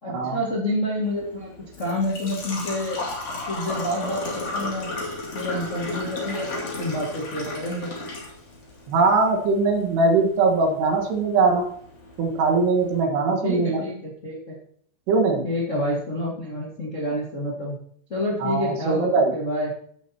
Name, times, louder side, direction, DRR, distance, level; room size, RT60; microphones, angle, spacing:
voice 1, 0.0-1.5 1.8-3.0 3.5-4.9 5.3-7.9 13.4-14.6 15.4-17.7 18.1-19.7, left 1 dB, 70° left, -5 dB, 0.7 m, -28 dB
Engine / Trickle dribble / Fill (with liquid), 1.0-13.0, left 2 dB, 40° left, 2.8 m, -35 dB
voice 2, 8.9-11.7 12.2-13.8 15.1-15.5 18.4-19.3, right 3 dB, 70° right, 0 dB, 3.5 m, -21 dB
15.5 x 7.1 x 2.9 m, 0.62 s
omnidirectional pair, 5.2 m